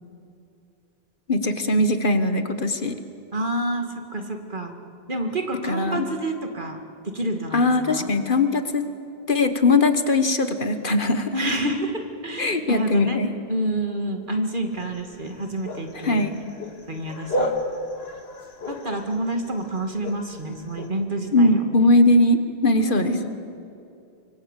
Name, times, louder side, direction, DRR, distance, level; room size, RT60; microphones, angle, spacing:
voice 1, 1.3-2.9 5.6-6.1 7.5-8.9 9.3-11.3 12.4-13.3 16.0-16.4 21.3-23.3, left 2 dB, 55° left, 9 dB, 1.5 m, -20 dB
voice 2, 3.3-3.9 4.1-4.7 5.1-6.8 7.0-8.1 11.3-13.2 13.5-16.3 16.9-17.5 18.7-21.6 22.8-23.3, right 1 dB, 55° right, 4 dB, 2.2 m, -28 dB
Aboriginal Community Life Evening, 14.7-20.9, equal, 80° left, 2.2 m, -33 dB
24.5 x 24.5 x 8.3 m, 2.7 s
omnidirectional pair, 1.0 m